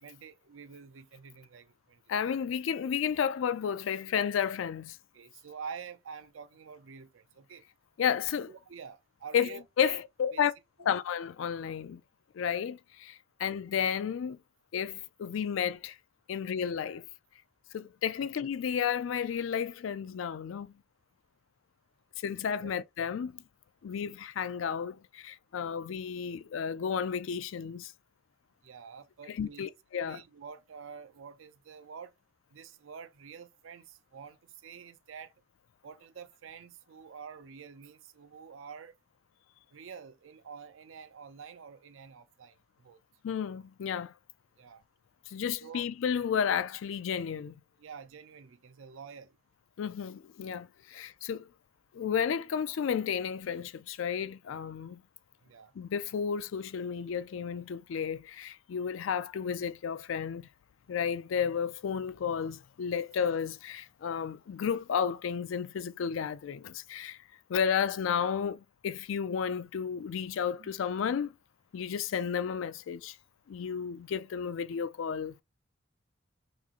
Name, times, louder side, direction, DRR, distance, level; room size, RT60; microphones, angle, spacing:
voice 1, 0.0-2.0 5.1-7.6 8.5-10.0 10.3-10.4 22.6-22.7 28.6-29.7 30.0-32.1 32.5-35.3 35.8-38.9 39.7-43.0 44.6-44.8 45.6-45.9 47.8-49.3 50.9-51.0 55.4-55.7 70.6-70.7, right 6 dB, 85° right, 0.5 m, -48 dB
voice 2, 2.1-5.0 8.0-8.5 9.3-9.5 9.8-10.5 10.9-12.0 12.3-14.4 14.7-16.0 16.3-17.0 17.7-20.7 22.2-23.4 23.8-27.9 29.3-30.2 43.2-44.1 45.3-47.5 49.8-51.5 51.9-55.0 55.8-60.5 60.9-67.2 67.5-71.3 71.7-73.2 73.5-75.4, left 7 dB, 80° left, 0.4 m, -32 dB
3.6 x 3.0 x 2.4 m
head